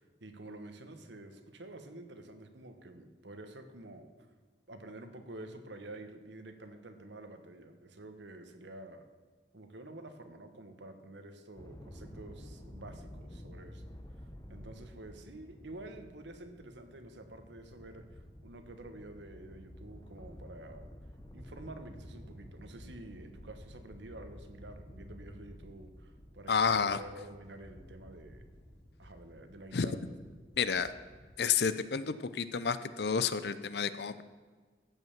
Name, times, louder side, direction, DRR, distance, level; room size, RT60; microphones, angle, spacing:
voice 1, 0.0-4.1 4.7-9.0 9.5-13.9 14.5-20.9 21.3-28.4 29.0-30.1, right 2 dB, 75° right, 7 dB, 1.2 m, -49 dB
sound 1, 11.6-31.4, equal, 20° left, 1.0 m, -51 dB
voice 2, 26.5-27.0 29.7-29.9 30.6-30.9 31.4-34.2, left 6 dB, 60° left, 14 dB, 0.5 m, -30 dB
15.0 x 5.5 x 7.2 m, 1.5 s
head